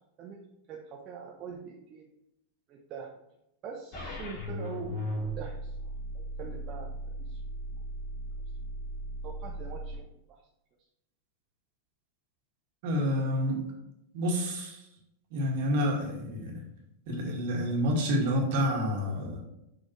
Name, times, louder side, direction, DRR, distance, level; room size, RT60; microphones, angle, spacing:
voice 1, 0.7-2.1 2.7-3.2 3.6-7.4 9.2-10.4, right 6 dB, 35° right, -1 dB, 1.0 m, -44 dB
sound 1, 3.9-10.0, right 1 dB, 45° left, 2.7 m, -37 dB
voice 2, 12.8-13.6 14.1-14.8 15.3-16.6 17.1-19.4, equal, 50° right, 0 dB, 2.1 m, -28 dB
7.7 x 5.7 x 3.2 m, 0.83 s
figure-of-eight pair, 90°, 0 cm